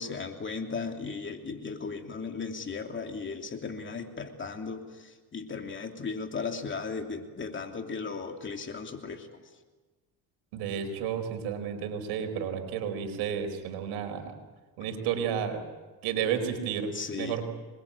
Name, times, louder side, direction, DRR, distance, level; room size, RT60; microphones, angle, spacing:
voice 1, 0.0-9.3 16.9-17.4, left 4 dB, 30° left, 4 dB, 3.0 m, -36 dB
voice 2, 10.5-14.3 14.8-15.6 16.0-17.4, right 8 dB, 85° right, 6 dB, 4.5 m, -32 dB
26.5 x 21.5 x 8.6 m, 1.3 s
cardioid pair, 105°, 38 cm